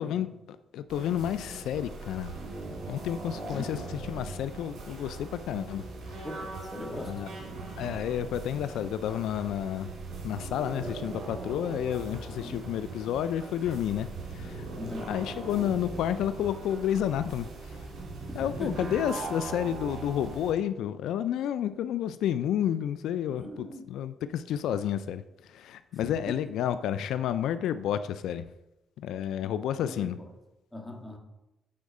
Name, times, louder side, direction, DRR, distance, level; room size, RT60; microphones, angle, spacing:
voice 1, 0.0-2.3 2.9-5.8 6.1-6.3 7.0-7.3 7.8-9.9 10.2-14.7 15.1-17.8 18.3-28.4 29.0-30.2, left 10 dB, 80° left, 12 dB, 0.3 m, -31 dB
sound 1, 0.9-20.5, right 3 dB, 70° right, 3.0 m, -40 dB
voice 2, 3.3-3.7 6.2-7.1 12.4-12.6 14.8-15.1 18.3-18.9 23.3-23.8 26.0-26.3 29.8-30.2 30.7-31.2, left 1 dB, 10° left, 1 dB, 1.7 m, -39 dB
8.6 x 4.5 x 5.3 m, 0.93 s
cardioid pair, 90°, 0 cm